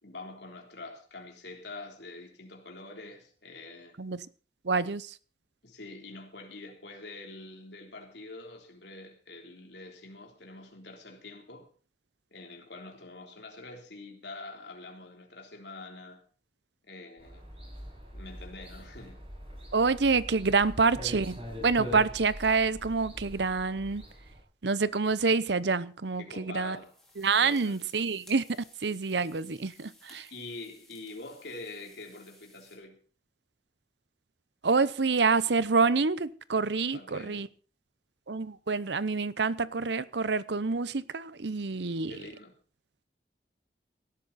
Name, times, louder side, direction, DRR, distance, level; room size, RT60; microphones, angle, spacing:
voice 1, 0.0-3.9 5.6-11.7 12.3-16.2 16.9-17.4 18.1-19.2 26.2-26.9 27.3-27.8 30.3-33.0 36.9-37.5 42.1-42.5, left 2 dB, 80° left, 3.6 m, -45 dB
voice 2, 4.6-5.2 19.7-21.4 21.6-24.0 24.6-26.8 27.2-28.4 28.8-30.3 34.6-37.5 38.3-42.2, right 4 dB, 80° right, 0.8 m, -27 dB
sound 1, 17.2-24.4, equal, 30° right, 7.1 m, -43 dB
sound 2, 24.7-25.4 26.4-32.8, left 1 dB, ahead, 5.1 m, -59 dB
17.5 x 13.0 x 4.3 m
head